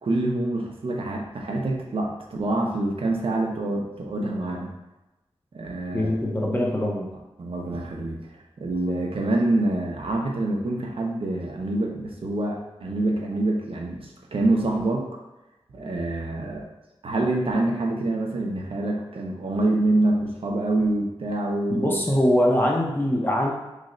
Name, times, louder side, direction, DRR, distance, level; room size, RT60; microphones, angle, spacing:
voice 1, 0.0-4.7 5.5-6.1 7.4-8.2 8.6-15.1 15.7-16.7 17.0-22.0, right 2 dB, 70° right, 0 dB, 0.5 m, -26 dB
voice 2, 5.9-7.1 21.7-23.5, left 1 dB, 20° left, -2 dB, 0.6 m, -22 dB
3.1 x 2.1 x 3.7 m, 1.0 s
wide cardioid pair, 95°, 10 cm